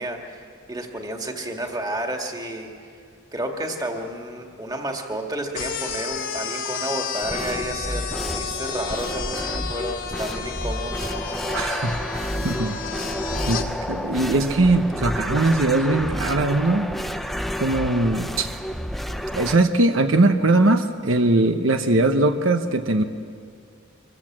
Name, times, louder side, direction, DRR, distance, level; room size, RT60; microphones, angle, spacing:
voice 1, 0.0-2.7 3.3-11.1, right 1 dB, 20° right, 2 dB, 2.1 m, -31 dB
sound 1, 5.5-13.7, left 6 dB, 70° left, 2.2 m, -32 dB
sound 2, 7.2-19.5, equal, ahead, 0.7 m, -30 dB
voice 2, 11.5-13.1 13.5-13.6 13.9-16.9 17.6-18.5 19.3-23.0, right 2 dB, 75° right, 7 dB, 1.0 m, -20 dB
26.0 x 23.0 x 7.5 m, 2.3 s
head